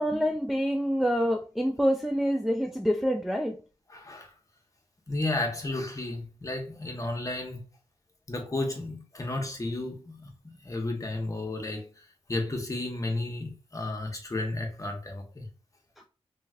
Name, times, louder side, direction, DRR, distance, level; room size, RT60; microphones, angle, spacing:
voice 1, 0.0-3.6, equal, ahead, 0.4 m, -26 dB
voice 2, 3.9-4.3 5.1-7.7 8.3-15.5, left 2 dB, 30° left, 1.0 m, -33 dB
3.0 x 2.8 x 2.3 m
cardioid pair, 55°, 11 cm